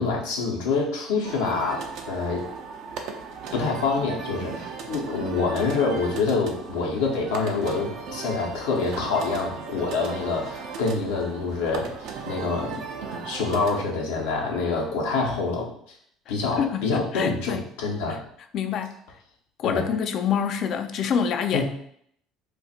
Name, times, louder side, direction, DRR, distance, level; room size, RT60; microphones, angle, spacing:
voice 1, 0.0-2.5 3.5-11.9 12.2-15.7 16.3-18.2 19.6-19.9 21.5-21.6, left 4 dB, 85° left, -2 dB, 0.9 m, -26 dB
sound 1, 1.2-13.8, right 5 dB, 70° right, 0.5 m, -37 dB
voice 2, 16.6-17.6 18.5-18.9 19.6-21.6, left 7 dB, 55° left, 8 dB, 0.3 m, -26 dB
2.5 x 2.4 x 4.1 m, 0.67 s
supercardioid pair, 80°, 0 cm